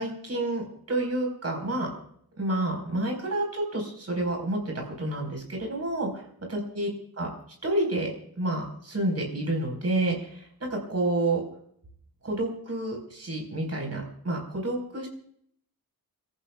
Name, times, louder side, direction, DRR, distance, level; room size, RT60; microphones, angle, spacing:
voice 1, 0.0-1.9 2.4-6.2 6.7-6.9 7.1-7.3 7.6-11.4 12.2-15.1, right 1 dB, 40° right, 1 dB, 4.8 m, -29 dB
30.0 x 14.0 x 2.4 m, 0.66 s
wide cardioid pair, 170°, 37 cm